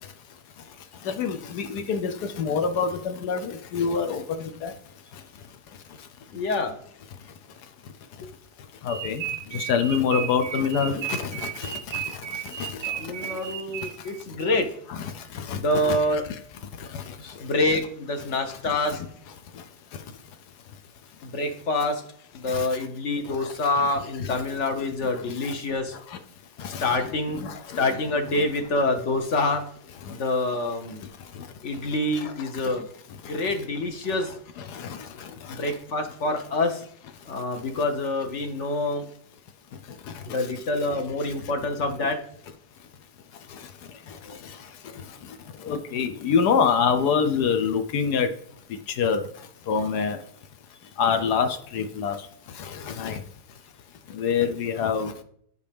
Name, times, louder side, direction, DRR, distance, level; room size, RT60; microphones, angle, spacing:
voice 1, 1.1-4.7 8.8-9.2 9.5-11.7 12.6-12.7 14.9-15.6 15.9-16.0 22.5-22.7 23.8-23.9 24.2-24.3 26.6-27.0 27.3-27.8 34.7-34.9 45.6-48.3 49.0-49.2 49.7-50.2 51.0-52.2 52.9-53.2 54.1-55.1, left 6 dB, 75° left, 8 dB, 1.3 m, -25 dB
voice 2, 6.3-6.7 12.9-14.7 15.5-16.2 17.2-19.0 21.2-22.0 22.3-25.9 26.8-27.4 27.8-29.6 30.1-31.0 31.6-32.9 33.3-34.3 35.5-36.8 37.3-39.1 40.2-42.2 44.3-44.4, left 2 dB, 50° left, 6 dB, 1.1 m, -26 dB
sound 1, 8.9-14.2, right 11 dB, 75° right, 1.1 m, -34 dB
10.5 x 5.1 x 3.4 m, 0.64 s
omnidirectional pair, 1.8 m